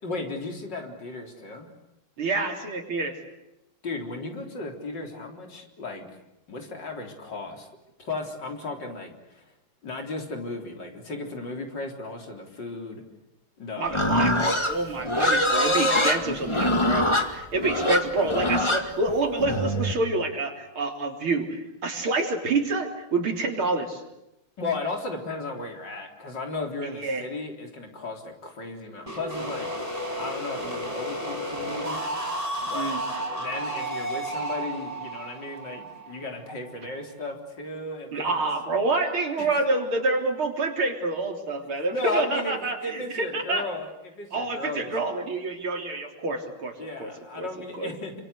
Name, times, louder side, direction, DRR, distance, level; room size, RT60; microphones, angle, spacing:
voice 1, 0.0-1.7 3.8-6.1 6.5-7.7 8.0-9.5 9.8-13.0 13.6-14.0 24.6-29.7 30.2-32.1 32.6-33.0 33.4-38.4 39.4-39.5 41.9-45.1 46.8-48.1, left 3 dB, 60° left, 3 dB, 4.5 m, -35 dB
voice 2, 2.2-3.2 13.8-24.0 27.0-27.3 32.7-33.0 38.1-43.7 44.3-46.7 47.0-47.1 47.4-47.5 47.7-47.9, right 3 dB, 90° right, 3 dB, 4.5 m, -27 dB
Livestock farm animals working animals, 13.9-20.0, left 1 dB, 15° left, 1.9 m, -24 dB
sound 1, 29.1-36.8, right 1 dB, 15° right, 5.4 m, -32 dB
28.5 x 25.5 x 8.3 m, 0.87 s
omnidirectional pair, 2.2 m